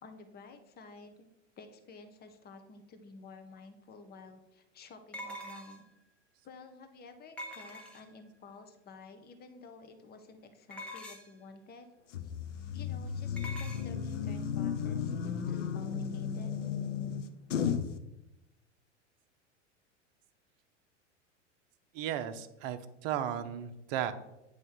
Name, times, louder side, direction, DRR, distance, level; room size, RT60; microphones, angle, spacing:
voice 1, 0.0-1.3 1.6-5.9 6.4-11.9 12.2-12.3 12.7-16.7, left 4 dB, 25° left, 6 dB, 1.0 m, -52 dB
sound 1, 3.6-3.7 5.1-6.0 7.4-8.3 10.7-11.4 13.4-13.9, equal, 5° left, 1.0 m, -44 dB
sound 2, 12.1-18.0, left 7 dB, 80° left, 0.7 m, -34 dB
voice 2, 21.9-24.1, right 10 dB, 50° right, 10 dB, 0.8 m, -35 dB
9.1 x 3.1 x 5.7 m, 0.92 s
hypercardioid pair, 90°, 36 cm